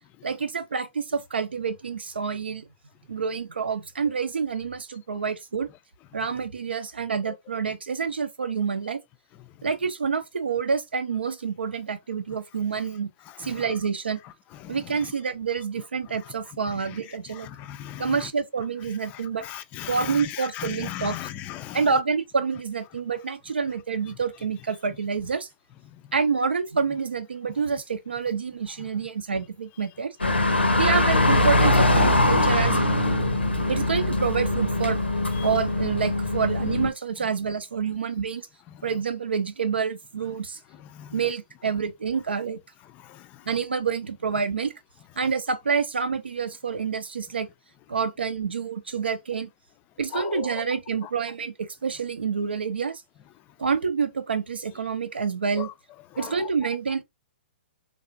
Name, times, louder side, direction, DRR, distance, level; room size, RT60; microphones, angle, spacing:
voice 1, 0.2-2.6 3.1-5.7 6.1-9.0 9.6-13.1 13.4-14.2 14.7-17.5 18.0-19.4 19.9-21.2 21.7-25.5 26.1-30.1 30.7-32.8 33.7-35.0 35.4-38.5 38.8-40.6 41.1-42.6 43.5-44.7 45.2-47.5 47.9-49.5 50.0-53.0 53.6-55.7 56.2-57.0, right 5 dB, 75° right, 0.5 m, -27 dB
voice 2, 13.3-13.7 14.2-15.1 16.1-16.3 16.7-18.3 19.0-21.9 25.9-26.0 28.8-28.9 30.5-30.8 33.3-33.4 35.3-35.5 38.7-38.9 40.7-41.2 42.9-43.5 50.1-50.6 51.0-51.1 55.6-55.7 56.1-56.5, left 12 dB, 25° left, 0.3 m, -39 dB
sound 1, 30.2-36.9, left 1 dB, 90° left, 0.7 m, -22 dB
3.2 x 2.4 x 2.5 m
figure-of-eight pair, 120°, 6 cm